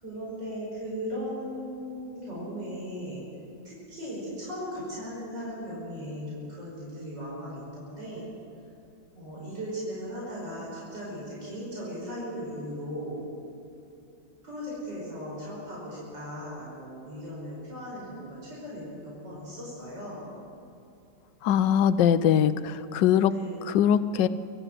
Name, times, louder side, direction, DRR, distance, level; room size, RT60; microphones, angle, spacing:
voice 1, 0.0-3.2 3.6-8.3 9.1-13.2 14.4-20.3 23.2-23.7, equal, 85° right, -6 dB, 6.0 m, -37 dB
voice 2, 21.4-23.3 23.7-24.3, left 9 dB, 85° left, 13 dB, 1.4 m, -22 dB
25.0 x 14.0 x 7.6 m, 2.7 s
omnidirectional pair, 1.9 m